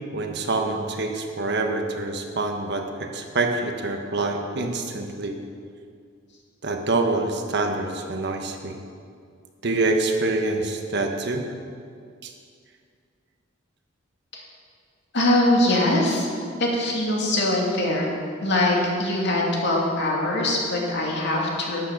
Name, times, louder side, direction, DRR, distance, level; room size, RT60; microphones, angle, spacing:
voice 1, 0.1-5.4 6.6-8.8 9.6-11.4 12.2-12.3, right 2 dB, 60° right, 4 dB, 1.3 m, -26 dB
voice 2, 15.1-16.3 16.6-18.1 18.4-21.9, left 1 dB, 60° left, -2 dB, 2.6 m, -22 dB
12.5 x 9.4 x 5.9 m, 2.2 s
head